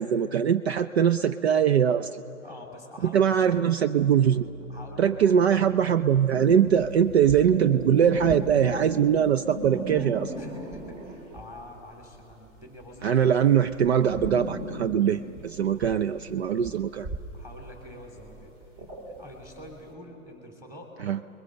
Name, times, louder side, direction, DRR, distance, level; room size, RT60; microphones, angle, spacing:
voice 1, 0.0-2.2 3.1-4.5 5.0-10.3 13.0-17.1 21.0-21.2, right 8 dB, 50° right, 11 dB, 0.6 m, -22 dB
voice 2, 2.4-3.3 4.7-5.3 10.4-13.3 17.3-18.5 18.8-20.9, left 1 dB, 5° right, 0 dB, 3.4 m, -46 dB
sound 1, 4.0-9.3, equal, 85° right, 4.4 m, -44 dB
sound 2, 6.1-11.6 11.9-19.8, right 1 dB, 30° right, 2.9 m, -36 dB
29.5 x 22.0 x 6.8 m, 2.9 s
figure-of-eight pair, 125°, 41 cm